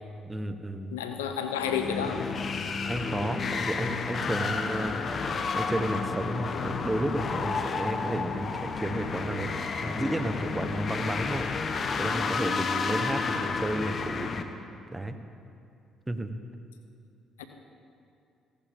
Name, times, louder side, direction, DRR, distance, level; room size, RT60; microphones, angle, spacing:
voice 1, 0.2-0.9 2.8-5.0 5.5-9.5 9.8-11.4 12.0-14.3 14.9-15.2 16.1-16.3, right 1 dB, 15° right, 8 dB, 1.2 m, -32 dB
voice 2, 0.9-2.2 17.4-17.5, left 7 dB, 90° left, 6 dB, 0.8 m, -30 dB
sound 1, 1.5-14.4, left 4 dB, 50° left, 1.0 m, -31 dB
17.0 x 16.0 x 3.7 m, 2.5 s
hypercardioid pair, 55°, 0 cm